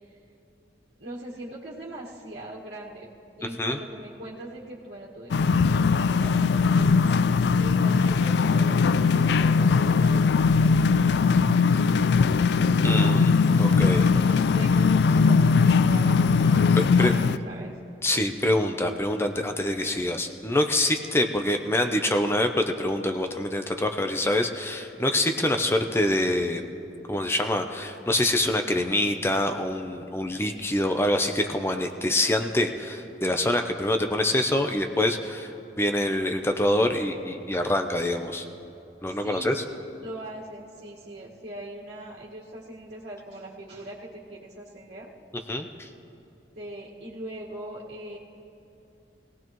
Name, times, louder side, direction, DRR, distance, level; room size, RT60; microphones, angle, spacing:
voice 1, 1.0-3.1 3.4-7.2 7.6-12.4 13.7-17.8 39.1-39.6 40.0-45.1 46.6-48.2, right 1 dB, 75° right, -6 dB, 1.7 m, -41 dB
sound 1, 5.3-17.4, left 5 dB, 75° left, 0.3 m, -20 dB
voice 2, 12.8-13.3 13.6-14.1 16.8-17.1 18.0-26.6 27.1-35.5 35.8-38.5 39.0-39.6 45.5-45.9, left 1 dB, 15° left, 5 dB, 0.6 m, -25 dB
21.5 x 17.5 x 3.1 m, 2.8 s
head